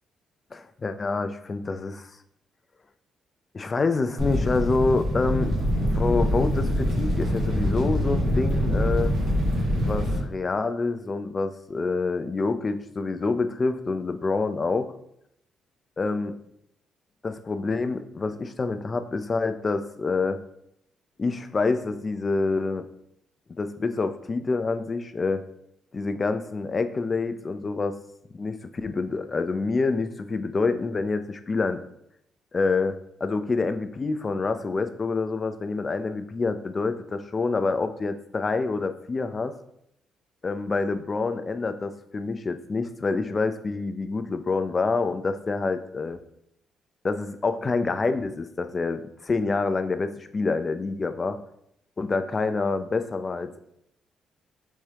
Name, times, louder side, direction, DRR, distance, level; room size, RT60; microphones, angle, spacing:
voice 1, 0.5-2.1 3.5-5.5 5.8-9.1 9.7-14.9 16.0-16.3 17.2-20.4 21.2-22.9 23.6-25.4 25.9-28.0 28.3-31.8 32.5-39.6 40.4-46.2 47.0-51.4 52.0-53.6, left 3 dB, 35° left, 9 dB, 0.4 m, -27 dB
sound 1, 4.2-10.2, equal, 80° right, 1.5 m, -24 dB
4.2 x 3.5 x 3.3 m, 0.75 s
cardioid pair, 90°, 0 cm